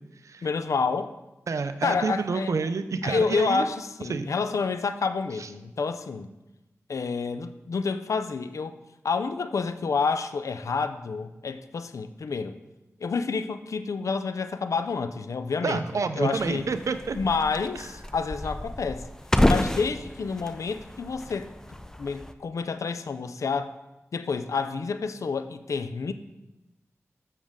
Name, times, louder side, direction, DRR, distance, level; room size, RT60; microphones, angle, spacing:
voice 1, 0.4-1.1 1.8-2.5 3.0-6.3 6.9-8.8 9.0-12.6 13.0-15.8 16.2-16.7 17.2-19.0 19.4-21.5 22.0-23.7 24.1-26.1, left 5 dB, 80° left, 11 dB, 0.4 m, -29 dB
voice 2, 1.5-3.7 4.1-4.3 5.4-5.5 15.6-17.2, right 4 dB, 80° right, 10 dB, 0.5 m, -28 dB
sound 1, 16.4-22.3, left 1 dB, 10° left, 0.4 m, -29 dB
7.3 x 6.3 x 3.6 m, 0.99 s
wide cardioid pair, 60°, 5 cm